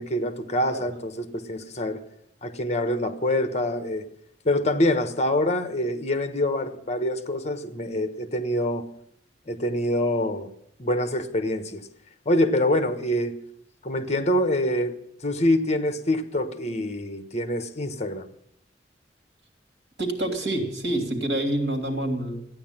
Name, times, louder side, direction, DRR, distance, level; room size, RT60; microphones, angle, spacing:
voice 1, 0.0-2.0 2.4-4.0 4.4-8.8 9.5-10.5 10.8-11.9 12.2-13.3 13.8-15.0 15.2-18.3, left 1 dB, 40° left, 1.3 m, -25 dB
voice 2, 20.0-22.5, right 1 dB, 65° right, 3.1 m, -27 dB
14.5 x 9.7 x 9.1 m
head